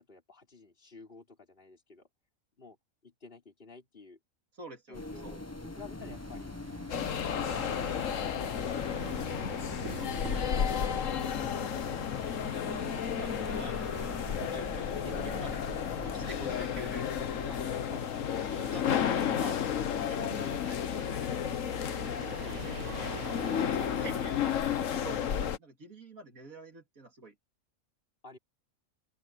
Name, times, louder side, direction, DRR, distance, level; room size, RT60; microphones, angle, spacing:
voice 1, 0.0-2.1 2.6-2.8 3.0-4.2 4.9-5.4 5.7-6.5 17.5-18.4 22.1-22.9 28.2-28.4, left 3 dB, 40° left, 4.6 m, -53 dB
voice 2, 4.5-5.4 10.0-10.4 10.7-11.7 12.7-17.1 18.7-19.8 20.0-21.6 23.2-27.3, right 2 dB, 80° right, 3.2 m, -47 dB
sound 1, 4.9-17.7, left 2 dB, 15° left, 0.8 m, -43 dB
sound 2, 6.0-25.5, right 9 dB, 65° right, 1.2 m, -48 dB
sound 3, 6.9-25.6, left 9 dB, 70° left, 1.3 m, -32 dB
open air
omnidirectional pair, 1.4 m